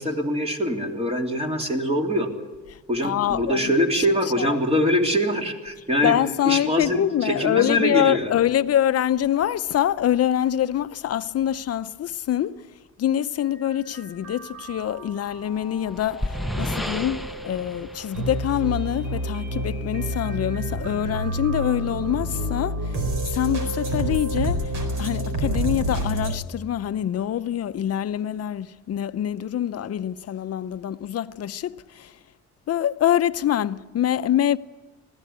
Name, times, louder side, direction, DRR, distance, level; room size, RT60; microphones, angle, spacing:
voice 1, 0.0-2.3 2.9-6.2 6.5-8.3, equal, 20° right, 3.1 m, -23 dB
voice 2, 3.0-4.0 4.4-4.6 6.0-12.7 13.0-23.0 23.3-32.1 32.7-34.6, left 11 dB, 55° left, 0.7 m, -25 dB
sound 1, 13.4-26.3, right 1 dB, 90° right, 4.4 m, -29 dB
sound 2, 15.4-19.1, left 1 dB, ahead, 0.9 m, -32 dB
21.0 x 15.5 x 9.4 m
cardioid pair, 90°, 30 cm